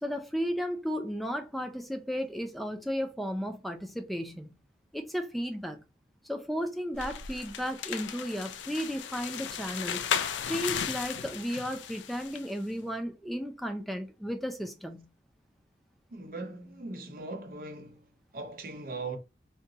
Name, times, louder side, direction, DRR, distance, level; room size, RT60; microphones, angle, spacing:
voice 1, 0.0-4.5 4.9-5.8 6.2-10.1 10.5-15.1, equal, ahead, 0.4 m, -34 dB
sound 1, 6.9-12.5, left 8 dB, 90° left, 0.4 m, -35 dB
voice 2, 16.1-18.1 18.3-19.2, right 3 dB, 50° right, 0.6 m, -39 dB
3.8 x 2.2 x 2.7 m
head